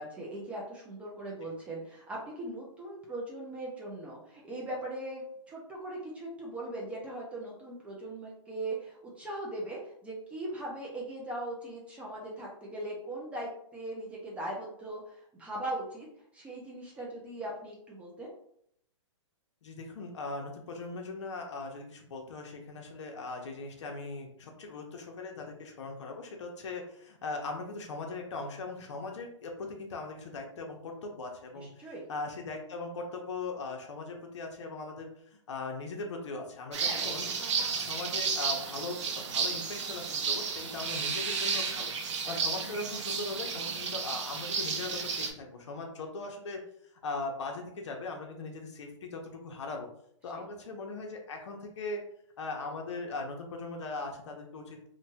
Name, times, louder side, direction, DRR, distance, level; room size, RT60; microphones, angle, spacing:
voice 1, 0.0-16.1 16.3-18.3 31.6-32.0 36.8-37.4 42.2-42.3, right 1 dB, 10° right, -4 dB, 0.4 m, -40 dB
voice 2, 19.6-37.3 37.6-41.9 42.3-46.6 47.0-49.9 50.2-52.0 52.4-54.9, left 3 dB, 65° left, 2 dB, 0.8 m, -39 dB
sound 1, 36.7-45.3, right 5 dB, 65° right, 0.6 m, -32 dB
3.0 x 2.2 x 2.7 m, 0.69 s
hypercardioid pair, 150°, 16 cm